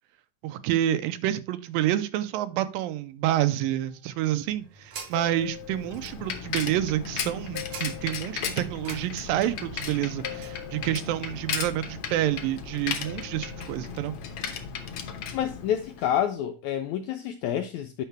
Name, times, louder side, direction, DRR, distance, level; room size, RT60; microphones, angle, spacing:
voice 1, 0.4-14.2, right 13 dB, 85° right, 2.4 m, -28 dB
sound 1, 3.7-3.9 5.1-6.5 6.7-6.8 7.5-8.6 10.2-11.5 13.0-14.0, left 10 dB, 40° left, 0.9 m, -43 dB
sound 2, 4.0-10.6, right 5 dB, 65° right, 1.6 m, -47 dB
Bicycle, 5.3-16.2, left 7 dB, 70° left, 1.4 m, -36 dB
voice 2, 15.3-18.0, left 10 dB, 85° left, 1.6 m, -28 dB
9.2 x 5.7 x 3.3 m
omnidirectional pair, 4.0 m